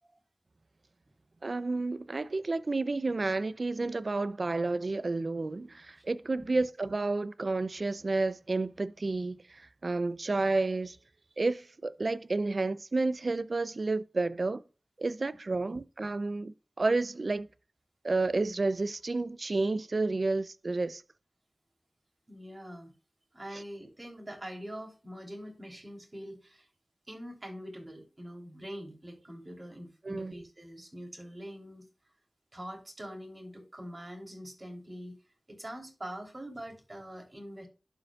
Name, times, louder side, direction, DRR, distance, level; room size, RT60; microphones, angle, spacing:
voice 1, 1.4-11.0 11.4-14.6 15.0-17.5 18.0-21.0 23.5-23.6 30.0-30.3, right 3 dB, 65° right, 0.5 m, -31 dB
voice 2, 22.3-22.9 23.3-26.7 27.1-31.8 32.5-35.1 35.5-37.7, equal, 40° right, 3.3 m, -44 dB
11.5 x 5.1 x 2.3 m
wide cardioid pair, 50°, 0 cm